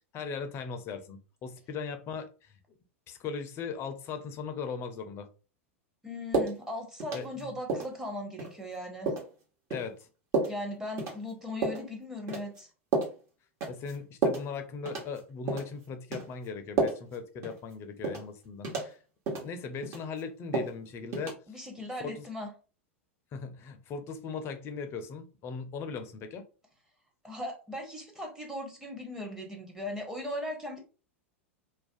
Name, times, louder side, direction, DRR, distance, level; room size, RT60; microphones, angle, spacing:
voice 1, 0.1-2.5 3.1-5.3 7.1-7.5 9.7-10.0 13.7-19.0 19.4-21.4 22.0-22.3 23.3-26.4, left 5 dB, 35° left, 0.4 m, -38 dB
voice 2, 6.0-9.1 10.5-12.7 21.5-22.5 27.2-30.8, left 1 dB, 5° right, 0.8 m, -38 dB
sound 1, 6.3-6.6 7.0-7.4 7.7-7.9 8.4-8.5 9.1-9.3 9.7-9.8 10.3-10.6 11.0-11.2 11.6-11.8 12.3-12.6 12.9-13.1 13.6-13.9 14.2-14.5 14.8-15.2 15.5-15.7 16.1-16.3 16.8-17.1 17.4-17.6 18.0-18.3 18.6-18.9 19.3-19.5 19.8-20.2 20.5-20.8 21.1-21.3, right 3 dB, 40° right, 1.0 m, -30 dB
2.4 x 2.1 x 2.5 m
hypercardioid pair, 95°, 7 cm